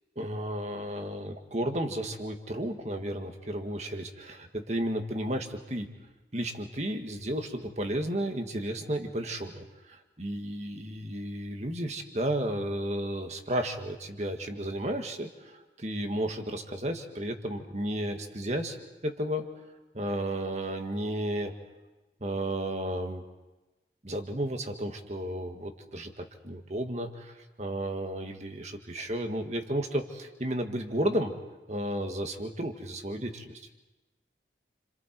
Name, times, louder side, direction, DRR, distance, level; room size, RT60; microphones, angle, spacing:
voice 1, 0.2-5.9 6.3-18.8 19.0-19.5 19.9-21.5 22.2-23.2 24.0-31.3 31.7-33.7, right 1 dB, 40° right, 5 dB, 1.9 m, -33 dB
29.5 x 27.5 x 4.7 m, 1.1 s
head